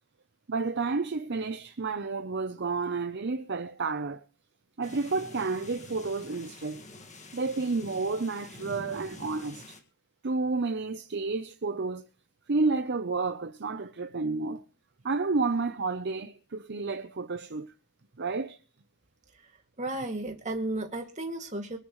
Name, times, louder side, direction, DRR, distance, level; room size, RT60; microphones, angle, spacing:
voice 1, 0.5-4.2 4.8-6.8 7.3-9.7 10.2-12.1 12.5-14.6 15.0-17.7 18.2-18.6, right 3 dB, 50° right, 0.7 m, -30 dB
sound 1, 4.8-9.8, left 2 dB, 35° left, 1.9 m, -47 dB
voice 2, 19.8-21.8, right 2 dB, 35° right, 2.3 m, -33 dB
24.5 x 10.0 x 3.2 m
head